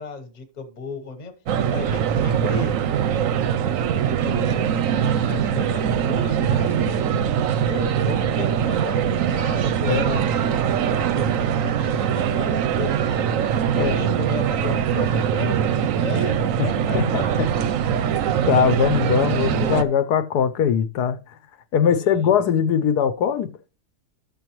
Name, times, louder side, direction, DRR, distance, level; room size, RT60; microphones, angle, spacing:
voice 1, 0.0-1.3 1.7-2.8 3.6-7.1 7.6-10.6 10.9-13.3 13.7-17.0 21.9-22.3, left 4 dB, 30° left, 1.0 m, -35 dB
sound 1, 1.5-19.8, right 8 dB, 65° right, 0.9 m, -22 dB
voice 2, 9.9-10.2 13.8-14.0 16.9-17.5 18.0-21.2 21.7-23.5, left 7 dB, 80° left, 1.2 m, -21 dB
12.0 x 6.9 x 3.0 m
omnidirectional pair, 1.7 m